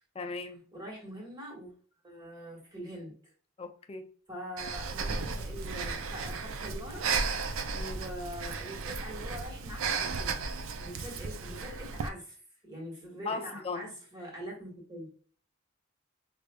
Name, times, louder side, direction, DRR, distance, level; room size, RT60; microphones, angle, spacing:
voice 1, 0.2-0.7 3.6-4.1 7.7-8.0 13.3-13.9, left 3 dB, 30° left, 0.4 m, -37 dB
voice 2, 0.7-1.7 2.0-3.2 4.3-7.1 7.9-10.4 10.7-12.4 12.6-15.1, equal, 20° right, 1.5 m, -43 dB
Breathing, 4.6-12.1, right 4 dB, 85° right, 0.5 m, -34 dB
4.8 x 2.5 x 2.3 m
head